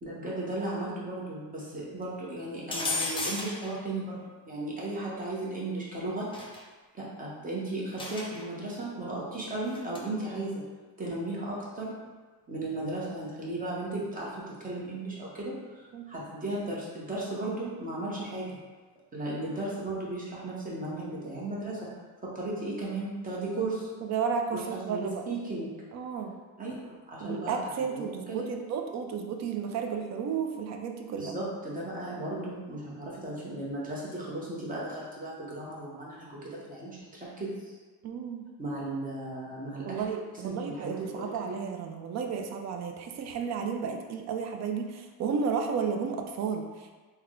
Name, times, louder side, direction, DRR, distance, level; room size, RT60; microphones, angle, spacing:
voice 1, 0.0-6.3 6.9-10.6 11.0-11.9 12.5-14.3 14.6-18.5 19.1-21.9 22.2-23.9 24.5-25.7 26.6-28.4 31.1-37.5 38.6-40.0 40.4-41.7, right 2 dB, 20° right, -5 dB, 0.9 m, -35 dB
sound 1, 2.7-3.7 6.3-6.6 8.0-8.4 9.7-10.0, left 3 dB, 15° left, 0.5 m, -33 dB
voice 2, 24.0-25.2 25.9-26.3 27.2-31.3 38.0-38.5 39.9-46.9, right 6 dB, 50° right, 4 dB, 0.4 m, -33 dB
3.4 x 2.2 x 3.6 m, 1.3 s
cardioid pair, 125°, 37 cm